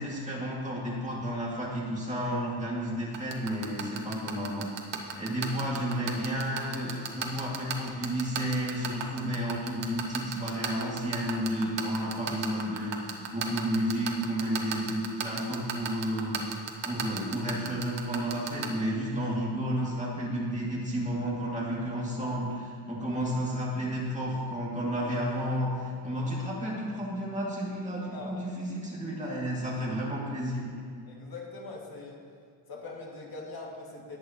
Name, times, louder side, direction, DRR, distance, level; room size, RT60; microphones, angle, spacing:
voice 1, 0.0-4.7 5.2-30.6, equal, 15° right, -6 dB, 2.3 m, -32 dB
sound 1, 3.1-18.7, right 8 dB, 85° right, 1.3 m, -32 dB
voice 2, 28.1-28.4 31.0-32.2 32.7-34.2, left 3 dB, 60° left, -3 dB, 2.2 m, -42 dB
19.5 x 8.4 x 3.0 m, 2.1 s
wide cardioid pair, 155°, 42 cm